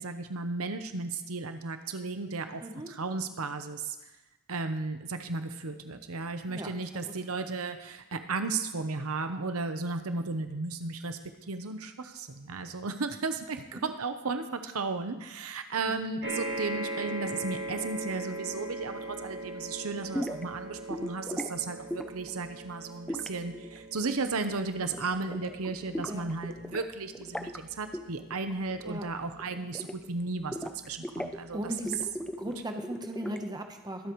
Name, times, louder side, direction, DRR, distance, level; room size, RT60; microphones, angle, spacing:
voice 1, 0.0-4.1 4.5-11.2 11.5-31.7, right 3 dB, 70° right, 8 dB, 0.8 m, -34 dB
sound 1, 16.2-30.8 31.5-31.6 31.9-32.0, right 1 dB, 50° right, 2.3 m, -41 dB
sound 2, 20.1-20.5 20.9-21.5 21.9-22.3 23.1-24.5 24.8-25.1 25.3-26.9 27.1-27.6 27.9-28.1 28.3-28.8 29.1-30.2 30.5-31.4 31.8-33.6, equal, 5° left, 0.4 m, -37 dB
voice 2, 31.5-32.0 32.4-34.1, equal, 20° right, 4 dB, 0.9 m, -37 dB
22.0 x 8.3 x 3.1 m, 1.0 s
head